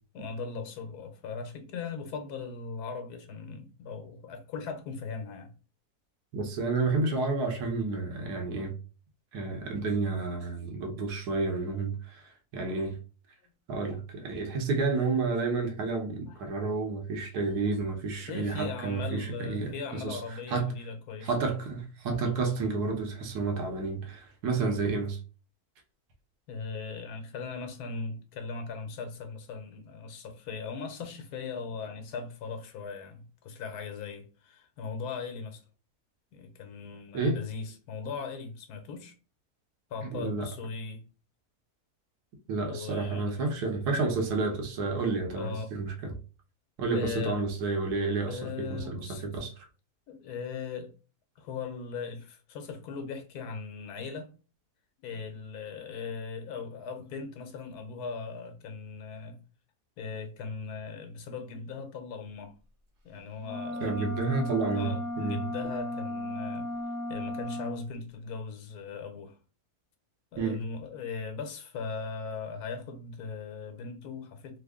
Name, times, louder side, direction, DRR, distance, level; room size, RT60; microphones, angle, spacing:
voice 1, 0.1-5.5 16.3-16.4 18.2-21.3 26.5-35.6 36.3-39.1 39.9-41.1 42.6-43.5 45.4-45.7 46.9-47.4 48.3-49.2 50.1-50.9 51.4-54.3 55.0-59.4 60.0-62.5 63.0-64.1 64.7-66.7 67.1-69.4 70.3-74.6, left 5 dB, 85° left, 1.2 m, -39 dB
voice 2, 6.3-8.7 9.3-13.0 13.7-20.2 20.5-20.7 21.2-25.2 37.1-37.4 40.0-40.5 42.5-46.1 46.8-49.7 63.8-65.4 70.4-70.6, right 3 dB, 85° right, 1.4 m, -30 dB
sound 1, 63.4-67.8, left 1 dB, 55° right, 1.0 m, -35 dB
3.4 x 2.0 x 3.5 m
omnidirectional pair, 1.6 m